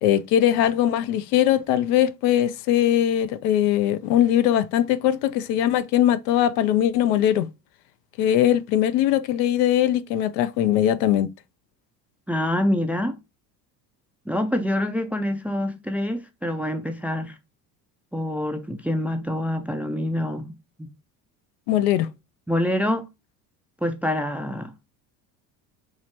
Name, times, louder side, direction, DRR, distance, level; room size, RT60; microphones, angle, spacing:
voice 1, 0.0-7.5 8.2-11.3 21.7-22.1, left 11 dB, 70° left, 0.6 m, -21 dB
voice 2, 12.3-13.2 14.3-17.4 18.1-20.9 22.5-23.1 23.8-24.7, left 1 dB, 5° right, 0.4 m, -26 dB
4.7 x 2.1 x 2.8 m
hypercardioid pair, 70°, 47 cm